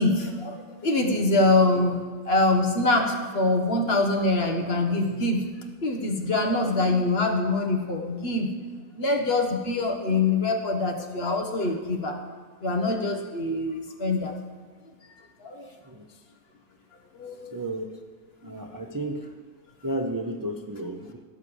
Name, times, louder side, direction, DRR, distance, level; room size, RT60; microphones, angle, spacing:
voice 1, 0.0-5.5 5.8-8.5 8.9-12.2 12.6-14.3 15.4-15.7 17.1-17.5 18.4-18.5, left 2 dB, 45° left, 3 dB, 1.5 m, -24 dB
voice 2, 15.9-16.2 17.5-17.8 18.4-19.3 19.8-21.2, right 1 dB, 30° right, 3 dB, 0.4 m, -32 dB
16.0 x 6.5 x 7.1 m, 1.5 s
omnidirectional pair, 1.6 m